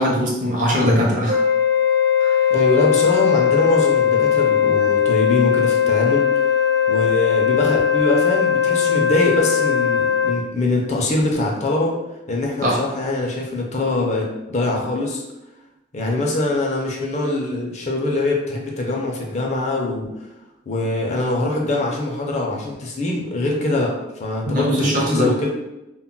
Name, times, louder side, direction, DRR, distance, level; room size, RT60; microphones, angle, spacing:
voice 1, 0.0-1.4 2.2-2.4 12.6-12.8 24.5-25.3, equal, 40° right, -2 dB, 0.6 m, -20 dB
Wind instrument woodwind instrument, 1.3-10.4, left 8 dB, 80° right, 0.9 m, -18 dB
voice 2, 2.5-6.5 6.9-12.0 12.3-15.2 15.9-20.3 20.7-25.5, left 2 dB, 35° left, -1 dB, 0.4 m, -23 dB
2.2 x 2.0 x 3.7 m, 0.95 s
head